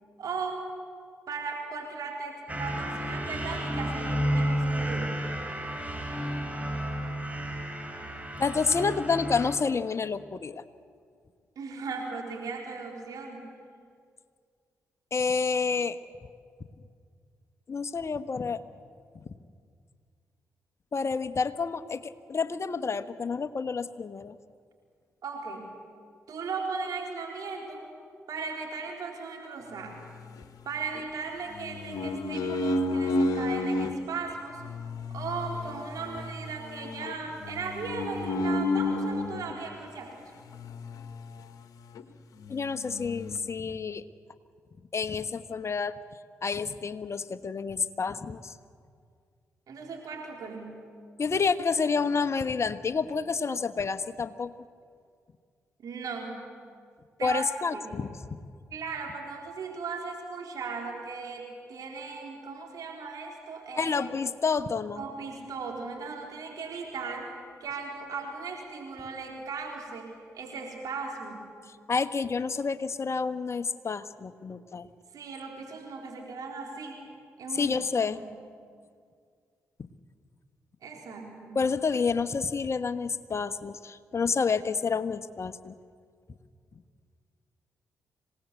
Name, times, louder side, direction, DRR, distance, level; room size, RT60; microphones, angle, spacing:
voice 1, 0.2-0.7 1.3-5.1 11.6-13.4 25.2-25.7 26.3-27.8 28.3-30.1 30.6-34.6 35.1-40.3 49.7-50.8 55.8-56.4 57.2-57.5 57.7-57.8 58.7-64.2 65.0-67.3 67.6-71.4 75.1-77.0 77.4-77.7 78.2-78.4 80.8-81.6, right 4 dB, 65° right, 0 dB, 4.0 m, -37 dB
sound 1, 2.5-9.6, right 1 dB, 20° right, 5.2 m, -31 dB
voice 2, 8.4-10.6 15.1-16.0 17.7-18.6 20.9-24.3 42.5-44.0 44.9-46.0 46.4-48.5 51.2-54.5 57.2-58.1 63.7-65.0 71.9-74.9 77.5-78.2 81.5-85.7, left 5 dB, 45° left, 12 dB, 1.2 m, -29 dB
sound 2, 29.8-31.0 31.5-34.0 34.5-39.6 40.4-41.6 41.9-42.0 42.4-43.4, left 2 dB, 65° left, 1.5 m, -32 dB
26.5 x 18.0 x 8.3 m, 2.2 s
hypercardioid pair, 45°, 7 cm